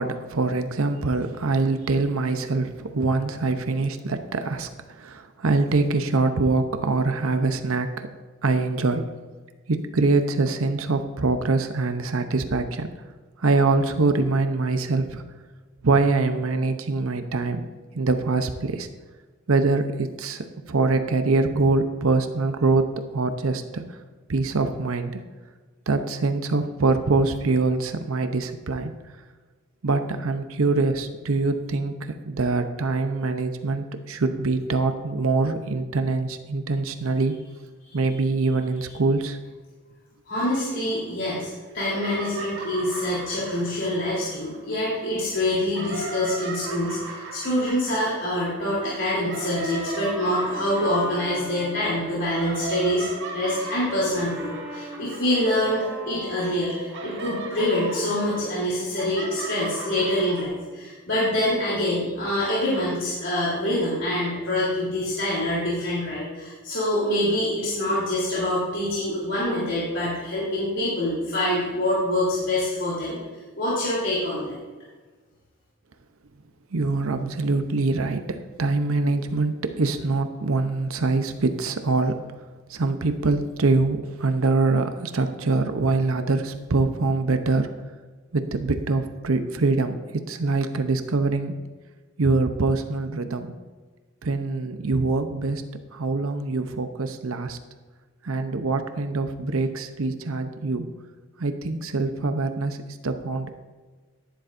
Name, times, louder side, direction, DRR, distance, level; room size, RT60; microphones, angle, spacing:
voice 1, 0.0-8.1 8.4-9.0 9.7-12.9 13.4-15.2 15.8-17.6 17.9-18.9 19.5-23.8 24.3-25.2 25.9-28.9 29.8-37.4 37.9-39.4 76.7-82.2 82.7-87.7 88.3-91.6 92.2-93.5 94.2-95.6 95.9-97.6 98.2-100.9 101.4-103.5, right 3 dB, 80° right, 8 dB, 0.8 m, -24 dB
voice 2, 40.3-53.1 53.3-73.2 73.6-74.6, left 1 dB, 60° left, -8 dB, 3.5 m, -25 dB
sound 1, 40.8-41.4 41.7-45.0 45.5-56.1 56.4-60.4, right 3 dB, 55° right, 2.2 m, -38 dB
Brass instrument, 48.6-52.6 53.1-57.2, equal, 10° right, 1.4 m, -40 dB
13.5 x 10.5 x 2.6 m, 1.3 s
head